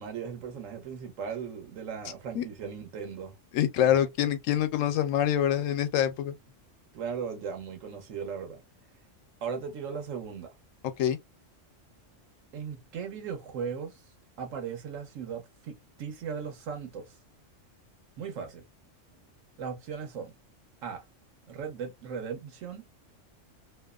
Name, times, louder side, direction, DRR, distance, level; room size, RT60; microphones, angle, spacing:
voice 1, 0.0-3.3 3.8-4.0 6.9-8.6 9.4-10.5 12.5-14.0 14.4-17.2 18.2-18.6 19.6-20.3 20.8-21.0 21.5-22.9, right 6 dB, 90° right, 1.2 m, -37 dB
voice 2, 3.5-6.3 11.0-11.2, left 10 dB, 90° left, 0.9 m, -25 dB
2.7 x 2.0 x 2.3 m
omnidirectional pair, 1.3 m